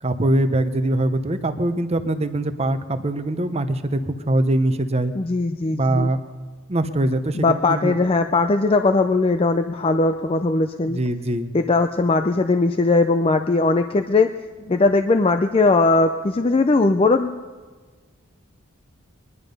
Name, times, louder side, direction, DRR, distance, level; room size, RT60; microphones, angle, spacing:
voice 1, 0.0-5.1 5.7-6.2 6.7-8.0 10.9-11.5, right 1 dB, 30° right, 9 dB, 0.8 m, -22 dB
voice 2, 5.2-6.1 7.3-11.0 11.5-14.3 14.6-17.4, left 3 dB, 25° left, 7 dB, 0.4 m, -19 dB
21.5 x 11.0 x 5.3 m, 1.4 s
head